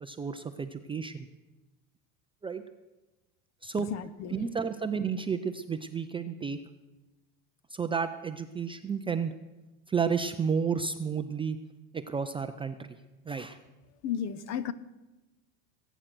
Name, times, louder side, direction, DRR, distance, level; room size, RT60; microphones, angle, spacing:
voice 1, 0.0-1.3 2.4-2.6 3.6-3.9 4.3-6.6 7.7-9.3 9.9-11.6 11.9-13.0 13.3-13.6, right 6 dB, 15° right, 8 dB, 0.4 m, -31 dB
voice 2, 3.9-4.4 14.0-14.7, left 8 dB, 40° left, 16 dB, 0.8 m, -33 dB
20.5 x 9.1 x 6.1 m, 1.1 s
supercardioid pair, 135°, 39 cm